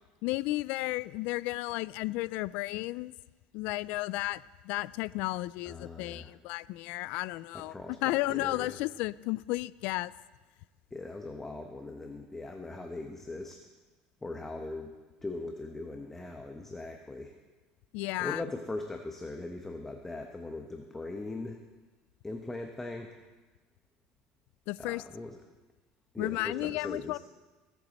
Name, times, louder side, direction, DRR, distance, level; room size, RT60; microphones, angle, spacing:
voice 1, 0.2-3.1 3.5-10.1 17.9-18.4 24.7-25.0 26.2-27.2, left 19 dB, 65° left, 19 dB, 0.3 m, -33 dB
voice 2, 5.7-6.3 7.5-8.8 10.9-13.6 14.2-14.9 15.2-17.3 18.2-21.6 22.2-23.2 24.8-25.4 26.1-27.2, left 2 dB, 10° left, 4 dB, 0.9 m, -40 dB
20.5 x 8.3 x 4.2 m, 1.2 s
supercardioid pair, 120°, 3 cm